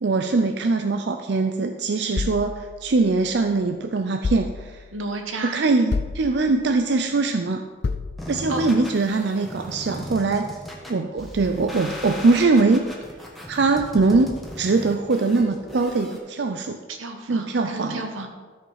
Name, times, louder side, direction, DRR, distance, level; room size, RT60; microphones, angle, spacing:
voice 1, 0.0-4.8 5.5-7.6 8.3-10.5 10.9-12.9 13.5-16.8 17.3-18.0, right 3 dB, 55° right, 5 dB, 0.5 m, -22 dB
sound 1, 2.2-3.6 4.2-5.1 5.9-6.8 7.8-8.6, left 4 dB, 50° left, 0.5 m, -31 dB
voice 2, 4.9-5.6 8.5-8.6 16.9-18.3, right 2 dB, 85° right, 4 dB, 1.4 m, -32 dB
sound 2, 8.2-16.2, equal, ahead, 1.3 m, -37 dB
13.0 x 5.3 x 5.7 m, 1.4 s
head